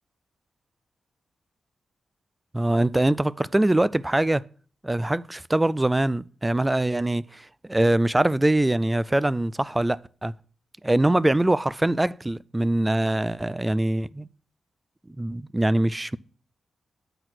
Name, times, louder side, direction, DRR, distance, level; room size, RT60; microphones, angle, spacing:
voice 1, 2.5-4.4 4.8-10.3 10.8-14.3 15.1-16.2, right 1 dB, 15° right, 0.4 m, -23 dB
8.9 x 4.3 x 6.2 m
cardioid pair, 85°, 0 cm